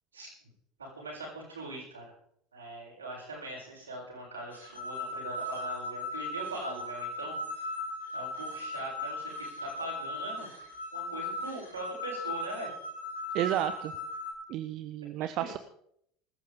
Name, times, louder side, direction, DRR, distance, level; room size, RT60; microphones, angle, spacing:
voice 1, 0.8-2.1 2.5-7.7 8.1-10.5 10.9-12.7 15.2-15.5, right 2 dB, 80° right, -4 dB, 7.2 m, -41 dB
sound 1, 4.5-14.3, left 1 dB, 85° left, 4.6 m, -38 dB
voice 2, 13.3-13.9 14.5-15.6, right 12 dB, 50° right, 11 dB, 0.9 m, -32 dB
20.5 x 13.5 x 3.8 m, 0.70 s
figure-of-eight pair, 70°, 0 cm